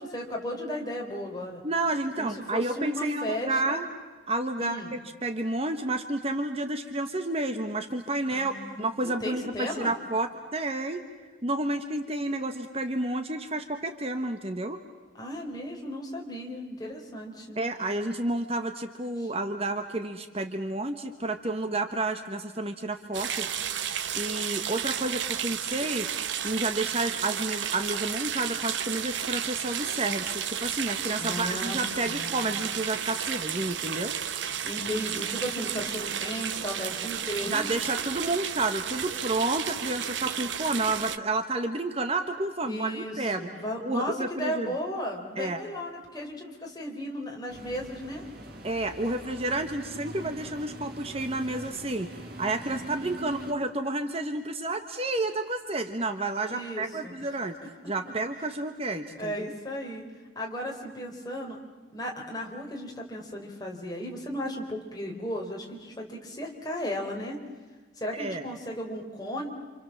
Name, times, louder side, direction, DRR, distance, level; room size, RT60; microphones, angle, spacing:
voice 1, 0.0-1.6 2.2-3.8 4.6-4.9 8.3-8.8 9.2-9.9 15.1-17.6 19.2-19.3 31.2-31.8 32.1-32.5 34.6-37.9 42.7-48.3 56.5-57.3 57.8-57.9 59.2-60.0 60.4-61.6 61.9-67.4 68.0-69.5, equal, 20° left, 0 dB, 4.2 m, -35 dB
voice 2, 1.6-3.9 4.3-11.0 11.4-14.8 17.6-23.5 23.8-26.1 26.4-34.2 37.5-43.5 43.8-44.7 45.4-45.6 48.6-52.1 52.4-57.6 57.8-59.5 68.2-68.4, right 2 dB, 30° right, 7 dB, 1.3 m, -30 dB
sound 1, 23.1-41.2, right 9 dB, 75° right, 1.0 m, -32 dB
sound 2, 47.5-53.5, right 1 dB, 50° right, 2.9 m, -42 dB
28.5 x 28.0 x 7.3 m, 1.3 s
head